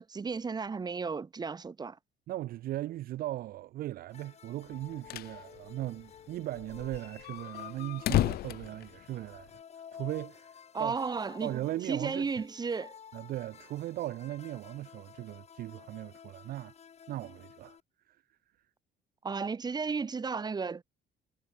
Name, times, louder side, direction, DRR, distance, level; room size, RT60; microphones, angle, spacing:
voice 1, 0.0-2.0 10.7-11.5 11.8-13.0 19.2-20.8, right 5 dB, 25° right, 1.2 m, -34 dB
voice 2, 2.3-9.5 9.9-10.9 11.4-12.3 13.1-16.7 17.1-17.8 18.1-18.2, right 15 dB, 60° right, 0.5 m, -38 dB
sound 1, 4.1-17.8, left 7 dB, 40° left, 1.5 m, -52 dB
sound 2, 4.7-5.4 5.7-5.8 6.0-6.1 6.6-9.6, left 15 dB, 65° left, 0.8 m, -33 dB
cardioid pair, 110°, 17 cm